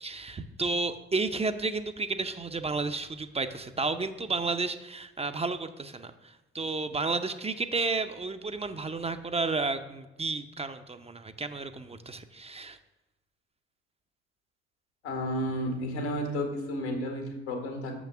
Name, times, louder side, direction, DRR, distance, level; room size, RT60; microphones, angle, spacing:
voice 1, 0.0-12.8, right 3 dB, 20° right, 9 dB, 0.6 m, -32 dB
voice 2, 15.0-17.9, equal, 80° left, 3 dB, 1.8 m, -32 dB
6.6 x 6.0 x 6.0 m, 1.0 s
figure-of-eight pair, 50°, 33 cm